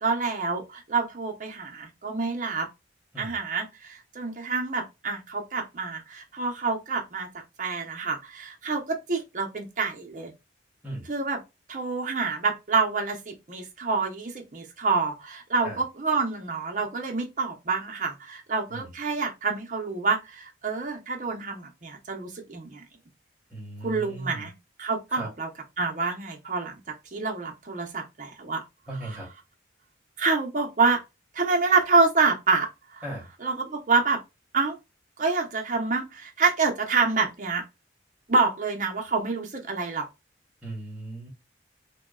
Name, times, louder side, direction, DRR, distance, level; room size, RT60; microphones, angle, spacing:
voice 1, 0.0-2.7 3.2-7.3 7.6-10.3 11.1-11.4 11.7-22.8 23.8-24.5 24.8-25.5 25.8-28.6 30.2-31.0 31.3-33.0 33.4-34.2 34.5-34.8 35.2-37.6 38.3-40.1, right 4 dB, 40° right, 0.6 m, -27 dB
voice 2, 23.5-24.5 25.1-25.3 28.9-29.3 33.0-33.3 40.6-41.3, right 1 dB, 10° right, 1.0 m, -37 dB
2.9 x 2.2 x 2.3 m
head